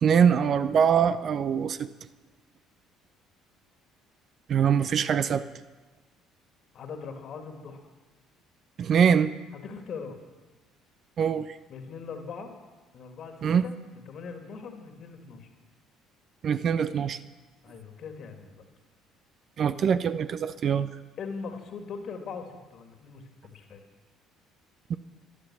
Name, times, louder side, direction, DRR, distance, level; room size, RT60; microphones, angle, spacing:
voice 1, 0.0-1.9 4.5-5.4 8.8-9.3 11.2-11.6 13.4-13.7 16.4-17.2 19.6-20.9 24.9-25.0, right 7 dB, 45° right, 13 dB, 0.6 m, -23 dB
voice 2, 6.7-7.8 9.5-10.2 11.7-12.5 12.9-15.5 17.6-18.6 21.2-23.8, left 5 dB, 50° left, 5 dB, 2.2 m, -41 dB
15.0 x 11.5 x 6.2 m, 1.2 s
figure-of-eight pair, 55°, 0 cm